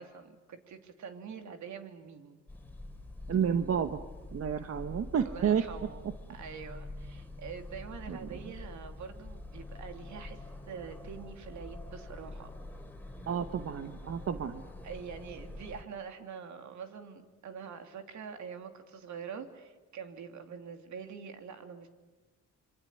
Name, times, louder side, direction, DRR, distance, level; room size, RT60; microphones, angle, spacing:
voice 1, 0.0-2.4 5.2-12.5 14.8-21.9, right 6 dB, 70° right, 6 dB, 3.0 m, -45 dB
sound 1, 2.5-15.8, left 2 dB, 5° left, 3.7 m, -46 dB
voice 2, 3.3-4.0 4.3-5.6 8.1-8.2 13.3-14.6, right 8 dB, 50° right, 9 dB, 1.3 m, -30 dB
26.5 x 25.0 x 9.0 m, 1.2 s
cardioid pair, 90°, 30 cm